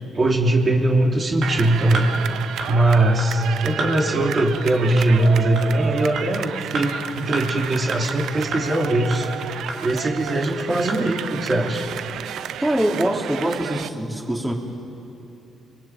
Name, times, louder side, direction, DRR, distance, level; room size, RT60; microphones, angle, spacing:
voice 1, 0.1-2.1 2.7-9.3 9.8-11.8, right 2 dB, 35° right, 0 dB, 3.1 m, -20 dB
sound 1, 1.4-1.5 1.9-2.1 2.6-2.7 3.2-3.3 3.8-3.9 4.4-4.5 5.0-5.1 5.6-5.7 6.2-6.3 6.7-6.9 7.3-7.4 7.9-8.0 8.5-8.6 9.1-9.2 9.7-9.8 10.3-10.4 10.9-11.0 11.5-11.6, right 3 dB, 60° right, 5.0 m, -29 dB
sound 2, 1.4-13.9, right 10 dB, 80° right, 0.8 m, -32 dB
voice 2, 12.6-14.5, right 1 dB, 10° right, 0 dB, 3.3 m, -23 dB
27.5 x 23.0 x 9.0 m, 2.8 s
cardioid pair, 90°, 0 cm